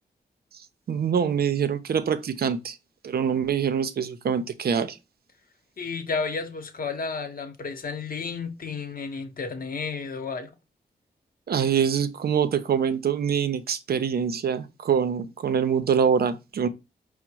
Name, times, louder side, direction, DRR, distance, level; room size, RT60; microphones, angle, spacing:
voice 1, 0.9-2.8 3.0-5.0 11.5-16.7, right 7 dB, 65° right, 0.5 m, -24 dB
voice 2, 5.8-10.5, left 4 dB, 60° left, 0.9 m, -32 dB
5.0 x 2.1 x 4.5 m
cardioid pair, 75°, 17 cm